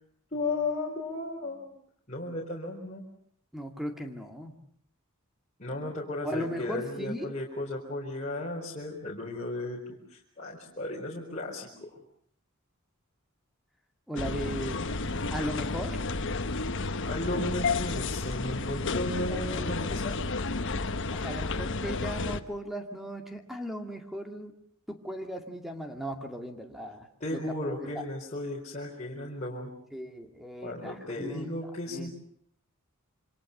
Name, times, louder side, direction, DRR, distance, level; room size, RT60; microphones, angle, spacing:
voice 1, 0.3-1.7 2.1-3.0 5.6-11.9 15.1-15.4 17.0-20.2 27.2-29.7 30.6-32.1, left 2 dB, 35° left, -3 dB, 4.6 m, -35 dB
voice 2, 3.5-4.6 6.2-7.3 14.1-14.8 15.3-16.0 19.0-19.8 21.1-24.5 24.9-28.0 29.9-32.1, equal, ahead, 4 dB, 2.3 m, -37 dB
sound 1, 14.2-22.4, left 3 dB, 60° left, 1.3 m, -31 dB
27.5 x 26.0 x 6.8 m, 0.63 s
head